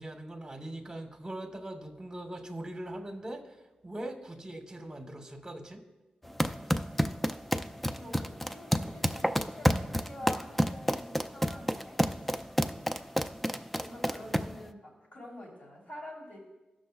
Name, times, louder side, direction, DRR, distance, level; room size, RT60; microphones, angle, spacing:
voice 1, 0.0-3.6 3.8-5.8, right 1 dB, 20° right, 3 dB, 1.0 m, -41 dB
sound 1, 6.2-14.6, equal, 5° left, 0.3 m, -30 dB
voice 2, 8.0-12.5 13.0-13.3 13.7-16.4, left 1 dB, 70° left, -5 dB, 3.3 m, -47 dB
16.0 x 6.3 x 2.3 m, 1.1 s
wide cardioid pair, 110°, 3 cm